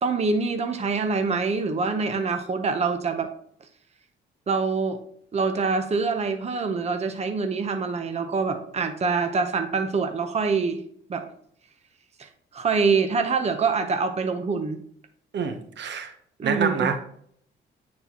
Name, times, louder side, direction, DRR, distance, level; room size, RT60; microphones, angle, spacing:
voice 1, 0.0-3.3 4.5-5.0 5.3-10.8 11.1-11.3 12.2-14.8 16.4-16.9, right 4 dB, 35° right, 0.8 m, -25 dB
voice 2, 15.3-16.1 16.4-17.0, right 6 dB, 65° right, 0.9 m, -27 dB
9.1 x 4.3 x 2.9 m
cardioid pair, 90°, 20 cm